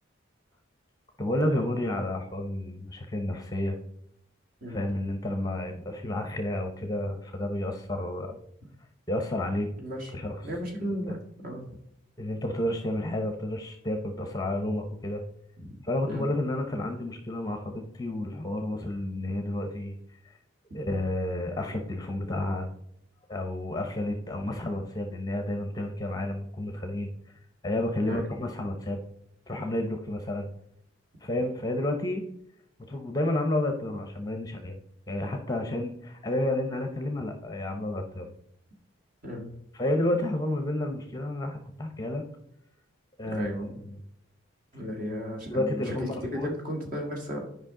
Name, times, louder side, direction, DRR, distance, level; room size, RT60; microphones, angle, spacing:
voice 1, 1.2-3.8 4.7-8.4 9.1-9.7 10.1-10.4 12.2-15.2 15.8-20.0 20.2-20.3 20.7-22.7 23.3-27.1 27.6-29.0 29.5-30.5 31.2-32.2 32.9-34.8 35.1-38.3 39.7-42.2 43.2-43.5 43.8-44.0 45.5-46.6, left 1 dB, 20° left, 5 dB, 0.7 m, -30 dB
voice 2, 9.8-10.1 10.4-11.2 11.4-11.7 15.6-15.7 16.1-16.2 28.0-28.3 39.2-39.5 43.3-43.7 44.7-47.5, equal, 40° right, 0 dB, 1.8 m, -34 dB
10.5 x 5.3 x 3.7 m, 0.74 s
head